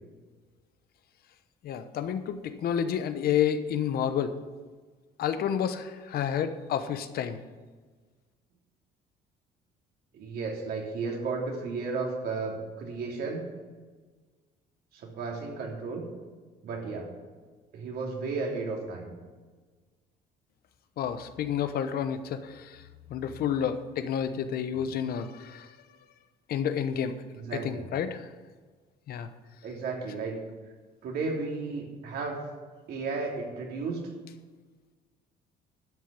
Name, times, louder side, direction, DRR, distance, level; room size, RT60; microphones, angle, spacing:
voice 1, 1.6-4.4 5.2-7.4 21.0-22.8 23.1-25.7 26.5-27.2 27.5-28.3 29.1-29.3, left 8 dB, 65° left, 10 dB, 1.0 m, -30 dB
voice 2, 10.1-13.5 14.9-16.0 16.6-17.1 17.7-19.1 24.7-24.8 27.3-27.9 29.6-30.4 31.0-32.5 32.9-34.0, right 4 dB, 65° right, 0 dB, 3.1 m, -33 dB
12.0 x 6.5 x 8.2 m, 1.4 s
cardioid pair, 110°, 17 cm